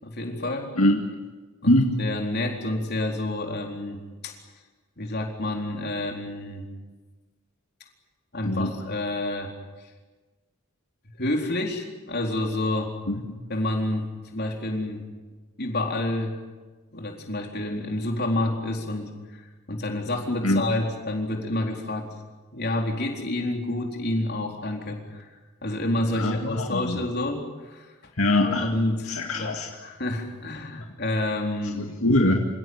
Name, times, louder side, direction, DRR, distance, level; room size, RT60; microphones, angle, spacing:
voice 1, 0.0-0.7 1.6-4.3 5.0-6.7 8.3-9.5 11.2-13.0 13.5-15.0 15.6-16.4 16.9-19.1 19.4-22.1 22.5-25.3 25.6-27.4 27.7-27.9 28.4-29.5 29.8-31.8, left 1 dB, 50° left, 1 dB, 4.1 m, -29 dB
voice 2, 0.8-1.2 1.7-2.0 8.4-8.7 13.1-13.2 20.4-20.7 26.1-27.0 28.2-28.7 29.1-29.7 31.7-32.4, left 1 dB, 75° left, 2 dB, 2.2 m, -23 dB
28.0 x 17.0 x 9.6 m, 1.3 s
head